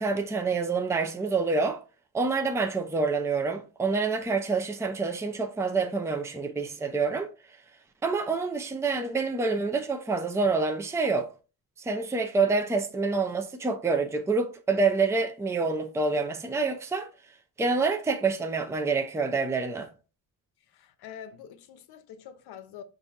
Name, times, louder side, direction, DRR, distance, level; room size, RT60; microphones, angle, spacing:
voice 1, 0.0-1.8 2.1-7.3 8.0-11.3 11.8-17.1 17.6-19.9, right 4 dB, 5° right, 0.5 m, -27 dB
voice 2, 20.7-22.8, left 9 dB, 70° left, 0.7 m, -45 dB
5.5 x 2.6 x 3.4 m
wide cardioid pair, 135°, 40 cm